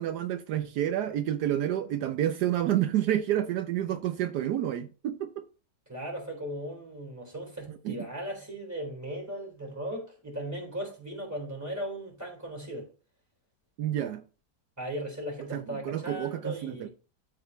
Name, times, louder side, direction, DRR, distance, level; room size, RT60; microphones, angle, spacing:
voice 1, 0.0-5.5 7.7-7.9 13.8-14.2 15.5-16.9, right 11 dB, 80° right, 1.2 m, -29 dB
voice 2, 5.9-12.9 14.8-16.9, right 1 dB, 10° right, 3.4 m, -37 dB
12.5 x 4.2 x 3.2 m
omnidirectional pair, 1.8 m